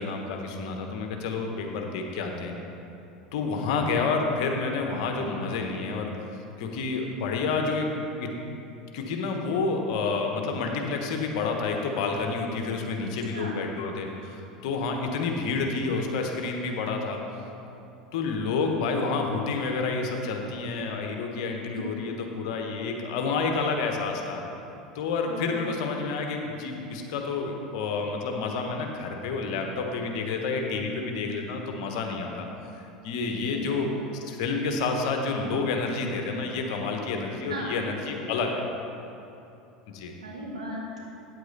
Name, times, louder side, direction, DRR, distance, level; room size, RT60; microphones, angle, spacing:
voice 1, 0.0-2.5 3.3-6.1 6.6-7.9 8.2-8.3 8.9-17.2 18.1-24.4 24.9-32.5 32.8-33.9 34.2-38.6 39.9-40.1, left 4 dB, 65° left, 2 dB, 1.1 m, -29 dB
voice 2, 25.3-25.7 33.4-33.6 37.4-37.7 40.2-41.0, right 1 dB, 90° right, -4 dB, 1.8 m, -37 dB
9.2 x 8.0 x 4.2 m, 2.8 s
hypercardioid pair, 80°, 4 cm